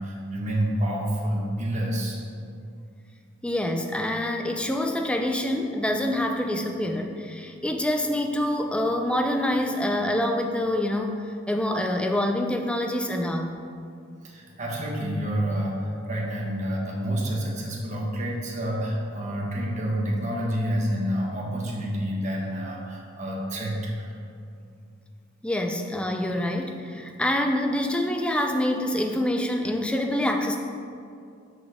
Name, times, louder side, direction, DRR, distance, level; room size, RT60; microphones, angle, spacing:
voice 1, 0.0-2.2 14.2-24.1, equal, 35° right, -3 dB, 1.2 m, -28 dB
voice 2, 3.4-13.5 25.4-30.6, left 1 dB, 5° left, 4 dB, 0.4 m, -26 dB
6.3 x 5.2 x 4.9 m, 2.4 s
head